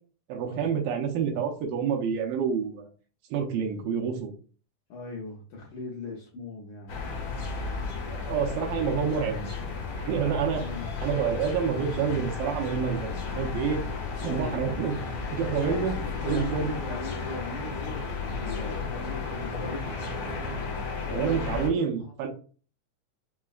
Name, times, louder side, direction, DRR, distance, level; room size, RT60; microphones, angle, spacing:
voice 1, 0.3-2.9 3.3-4.3 8.1-9.5 10.0-10.6 11.0-13.8 14.2-15.0 15.3-16.0 16.2-16.8 21.1-22.3, right 7 dB, 80° right, 2 dB, 2.3 m, -28 dB
voice 2, 4.9-6.9 10.5-10.9 14.2-14.7 15.6-20.0 21.0-21.8 22.2-22.3, left 3 dB, 80° left, -3 dB, 1.8 m, -39 dB
sound 1, 6.9-21.7, left 4 dB, 60° left, 1.5 m, -33 dB
5.5 x 2.1 x 2.3 m, 0.40 s
omnidirectional pair, 4.1 m